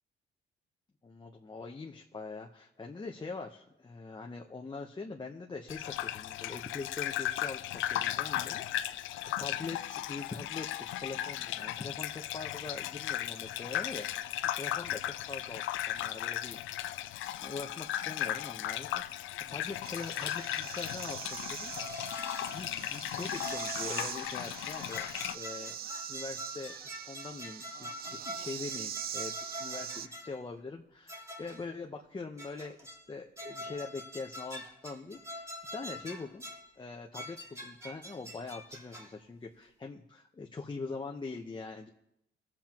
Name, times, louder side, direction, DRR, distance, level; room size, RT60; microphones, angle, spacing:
voice 1, 1.0-9.0 9.4-14.3 14.5-16.6 17.2-21.7 22.4-25.1 25.3-25.8 26.1-36.4 36.7-41.9, left 4 dB, 25° left, 1 dB, 0.9 m, -43 dB
Gurgling / Bathtub (filling or washing), 5.7-25.4, left 12 dB, 80° left, 0.5 m, -36 dB
sound 1, 19.8-30.1, right 10 dB, 50° right, 0.4 m, -42 dB
sound 2, 21.7-22.7 23.3-24.1 24.7-30.4 31.1-31.7 32.4-33.1 33.4-36.7 37.1-39.2, left 1 dB, 15° right, 2.2 m, -45 dB
22.0 x 7.5 x 3.0 m, 0.81 s
cardioid pair, 90°, 20 cm